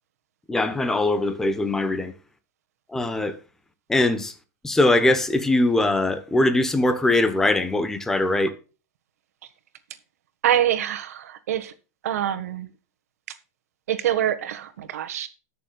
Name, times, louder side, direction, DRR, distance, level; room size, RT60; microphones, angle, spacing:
voice 1, 0.5-2.1 2.9-3.4 3.9-4.3 4.6-8.5, left 2 dB, 5° left, 1.0 m, -21 dB
voice 2, 10.4-11.7 12.0-12.7 13.9-15.3, right 11 dB, 75° right, 1.6 m, -25 dB
19.5 x 6.7 x 2.4 m
supercardioid pair, 160°, 8 cm